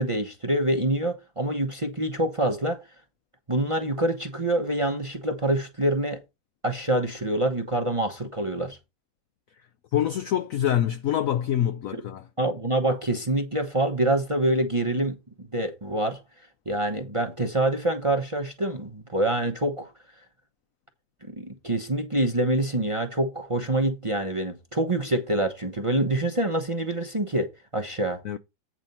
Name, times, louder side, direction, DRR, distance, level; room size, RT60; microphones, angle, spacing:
voice 1, 0.0-2.8 3.5-6.2 6.6-8.8 11.9-12.0 12.4-16.2 16.7-19.9 21.4-28.2, right 1 dB, 25° right, 0.7 m, -26 dB
voice 2, 9.9-12.3 28.2-28.4, left 10 dB, 85° left, 0.7 m, -25 dB
8.9 x 4.4 x 5.4 m
omnidirectional pair, 2.0 m